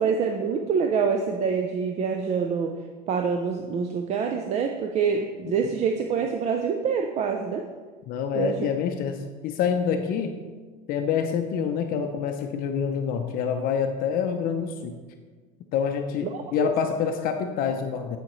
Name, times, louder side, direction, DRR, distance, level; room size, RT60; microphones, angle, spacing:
voice 1, 0.0-2.8 3.1-7.7 8.4-8.5 16.2-16.7, right 6 dB, 35° right, 4 dB, 0.5 m, -26 dB
voice 2, 8.1-10.3 10.9-15.0 15.7-18.2, left 7 dB, 50° left, 5 dB, 0.6 m, -27 dB
10.0 x 5.0 x 3.1 m, 1.4 s
supercardioid pair, 125°, 19 cm